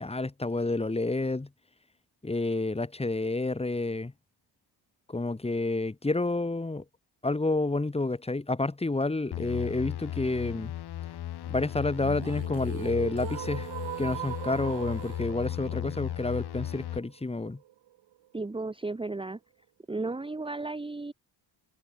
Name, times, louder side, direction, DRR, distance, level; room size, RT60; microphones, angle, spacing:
voice 1, 0.0-1.5 2.2-4.1 5.1-6.8 7.2-10.7 11.5-13.7 14.0-17.6, left 2 dB, 15° left, 4.0 m, -29 dB
sound 1, 9.3-17.0, left 12 dB, 55° left, 1.2 m, -36 dB
sound 2, 12.0-18.0, right 13 dB, 70° right, 2.2 m, -41 dB
voice 2, 18.3-19.4 19.9-21.1, right 3 dB, 10° right, 1.7 m, -34 dB
cardioid pair, 135°, 46 cm